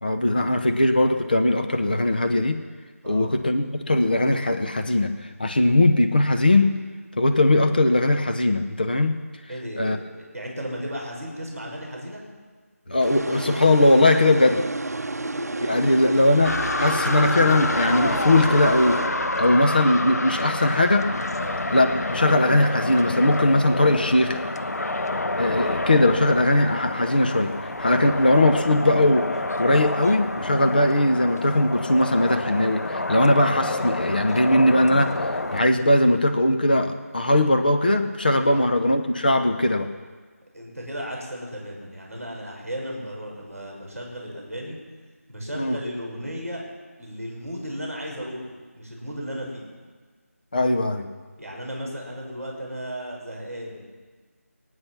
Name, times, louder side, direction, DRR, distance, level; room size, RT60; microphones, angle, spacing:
voice 1, 0.0-2.6 3.1-5.1 5.4-6.7 7.2-9.1 9.8-10.0 12.9-14.6 15.7-19.0 19.4-21.1 21.7-24.4 25.4-27.5 27.8-29.2 29.6-35.2 35.5-39.9 45.6-45.8 50.5-51.1, left 1 dB, 35° left, 6 dB, 0.9 m, -20 dB
voice 2, 3.0-3.3 9.5-12.2 15.4-16.0 21.4-21.6 38.5-38.7 40.5-44.8 45.3-46.6 47.0-49.7 51.4-53.8, equal, ahead, -19 dB, 4.8 m, -35 dB
sound 1, 13.0-19.7, right 2 dB, 80° right, 0.6 m, -31 dB
sound 2, 16.4-35.6, left 2 dB, 90° left, 1.0 m, -28 dB
23.5 x 9.7 x 6.0 m, 1.4 s
figure-of-eight pair, 180°, 8 cm